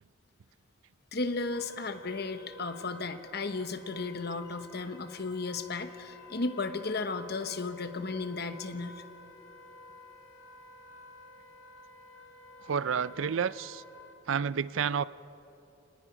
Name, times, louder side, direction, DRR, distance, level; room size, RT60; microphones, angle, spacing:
voice 1, 1.1-9.0, left 3 dB, 50° left, 9 dB, 1.1 m, -34 dB
Wind instrument woodwind instrument, 1.5-14.2, left 3 dB, 70° left, 1.8 m, -52 dB
voice 2, 12.6-13.8 14.3-15.0, right 7 dB, 75° right, 17 dB, 0.4 m, -30 dB
30.0 x 19.5 x 5.1 m, 2.9 s
head